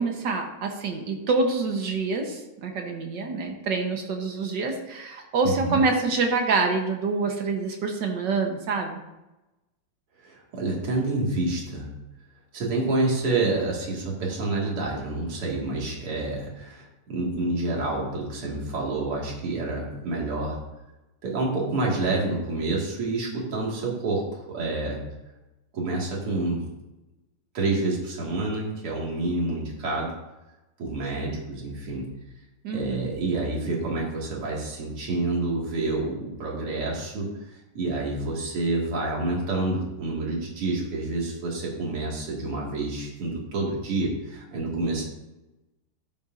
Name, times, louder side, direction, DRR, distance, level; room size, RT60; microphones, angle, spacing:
voice 1, 0.0-8.9 32.6-33.1, right 4 dB, 60° right, 3 dB, 1.6 m, -26 dB
voice 2, 5.4-5.8 10.2-12.0 12.5-20.6 21.2-25.0 25.7-26.7 27.5-30.1 30.8-32.1 32.7-37.3 37.7-45.0, right 2 dB, 85° right, -3 dB, 3.0 m, -28 dB
13.0 x 7.0 x 2.6 m, 0.99 s
omnidirectional pair, 2.4 m